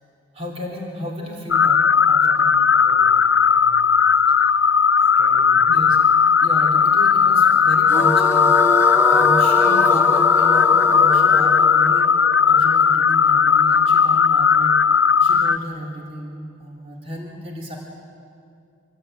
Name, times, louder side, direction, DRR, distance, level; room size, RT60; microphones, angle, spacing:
voice 1, 0.3-1.8 2.1-2.7 5.7-6.0 6.4-17.8, equal, 30° right, -2 dB, 3.2 m, -33 dB
sound 1, 1.5-15.6, left 6 dB, 60° left, 0.6 m, -16 dB
voice 2, 2.6-4.5 5.0-5.8 8.9-9.3, right 1 dB, 75° right, 2 dB, 5.0 m, -44 dB
sound 2, 7.9-13.1, left 2 dB, 15° left, 0.7 m, -24 dB
26.5 x 20.5 x 9.1 m, 2.4 s
head